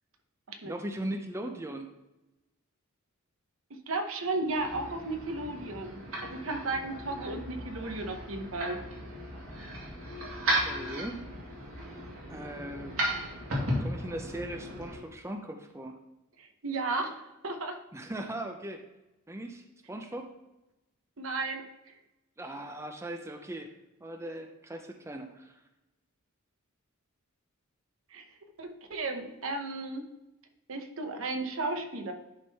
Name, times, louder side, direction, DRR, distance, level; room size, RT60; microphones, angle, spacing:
voice 1, 0.6-1.9 10.6-11.2 12.3-12.9 13.8-16.0 17.9-18.8 19.3-20.3 22.4-23.7 24.0-25.5, right 1 dB, 15° right, 4 dB, 0.5 m, -39 dB
voice 2, 3.7-6.0 6.3-8.8 16.4-17.8 21.2-21.9 28.1-28.2 28.6-30.0 30.7-32.1, right 2 dB, 70° right, 6 dB, 0.9 m, -34 dB
sound 1, 4.4-15.0, right 1 dB, 85° right, 2.1 m, -36 dB
10.5 x 3.7 x 4.1 m, 0.95 s
head